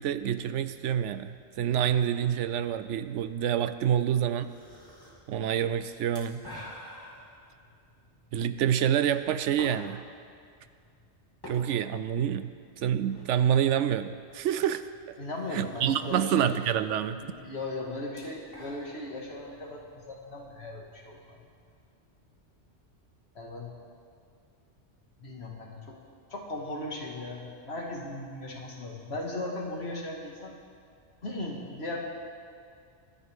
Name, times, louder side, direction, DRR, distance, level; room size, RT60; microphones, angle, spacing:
voice 1, 0.0-4.5 5.3-6.4 8.3-10.0 11.5-15.2 15.5-17.2, right 9 dB, 80° right, 12 dB, 0.9 m, -27 dB
sound 1, 2.0-21.7, equal, 20° left, 2.7 m, -52 dB
voice 2, 15.2-16.5 17.0-21.4 23.4-23.8 25.2-26.0 26.3-30.6 31.2-32.0, left 2 dB, 60° left, -2 dB, 2.2 m, -37 dB
24.5 x 10.5 x 3.6 m, 2.2 s
omnidirectional pair, 1.2 m